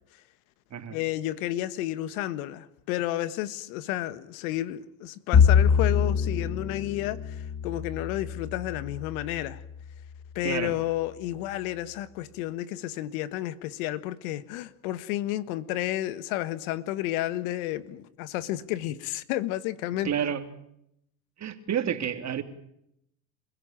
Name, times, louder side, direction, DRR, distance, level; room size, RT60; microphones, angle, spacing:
voice 1, 0.9-9.6 10.3-20.1, left 14 dB, 75° left, 1.6 m, -31 dB
Bowed string instrument, 5.3-9.7, left 7 dB, 35° left, 2.3 m, -25 dB
voice 2, 20.0-20.4 21.4-22.4, right 9 dB, 40° right, 3.1 m, -29 dB
28.5 x 16.5 x 9.0 m
supercardioid pair, 95°, 43 cm